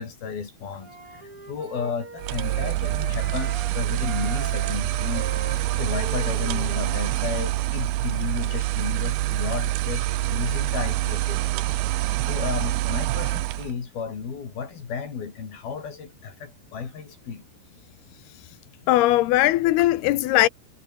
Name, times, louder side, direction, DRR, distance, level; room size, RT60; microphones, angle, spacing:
voice 1, 0.0-5.3 5.7-11.6 12.3-17.4, left 6 dB, 70° left, 6.0 m, -33 dB
Wind instrument woodwind instrument, 0.8-3.7 4.0-7.2, right 3 dB, 35° right, 7.5 m, -40 dB
sound 1, 2.2-13.7, right 16 dB, 85° right, 2.9 m, -26 dB
voice 2, 18.9-20.5, left 16 dB, 85° left, 3.1 m, -19 dB
omnidirectional pair, 4.4 m